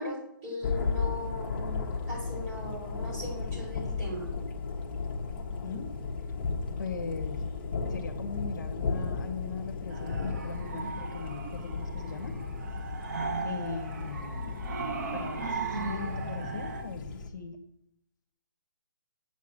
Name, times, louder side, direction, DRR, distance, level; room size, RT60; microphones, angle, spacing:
voice 1, 0.0-4.3, left 1 dB, 20° right, -4 dB, 4.4 m, -39 dB
Thunder, 0.6-17.3, left 4 dB, 30° left, 1.5 m, -35 dB
voice 2, 6.8-7.4 7.9-12.3 13.4-14.6 15.1-17.6, left 5 dB, 60° left, 5 dB, 1.4 m, -39 dB
sound 1, 9.9-16.8, right 4 dB, 50° right, 1.5 m, -37 dB
8.1 x 7.3 x 7.5 m, 0.75 s
hypercardioid pair, 165°, 11 cm